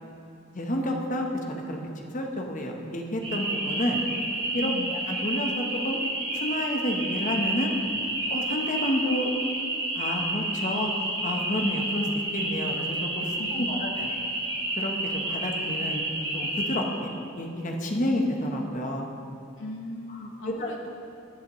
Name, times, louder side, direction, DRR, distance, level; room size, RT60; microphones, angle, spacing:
voice 1, 0.5-4.0 4.5-6.0 6.3-7.7 8.3-9.3 9.9-10.9 11.2-12.1 12.3-14.1 14.8-16.0 16.3-19.1 20.6-20.7, left 1 dB, 40° left, 1 dB, 1.0 m, -30 dB
sound 1, 3.2-16.7, right 2 dB, 25° right, 1.7 m, -30 dB
voice 2, 4.6-5.0 13.4-13.9 19.6-21.0, left 2 dB, 75° left, 3 dB, 0.6 m, -38 dB
15.0 x 8.0 x 3.1 m, 2.6 s
head